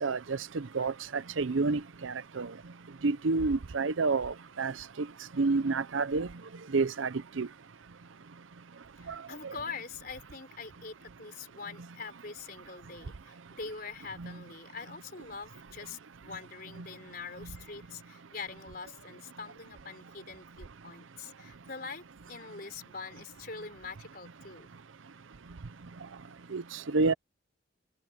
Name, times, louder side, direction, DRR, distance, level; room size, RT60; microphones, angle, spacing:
voice 1, 0.0-2.5 3.0-5.1 5.4-6.3 6.7-7.5 9.4-9.5 14.2-14.3 26.5-27.1, right 3 dB, 80° right, 0.7 m, -29 dB
voice 2, 9.0-24.7 25.9-26.0, left 4 dB, 50° left, 4.2 m, -44 dB
open air
head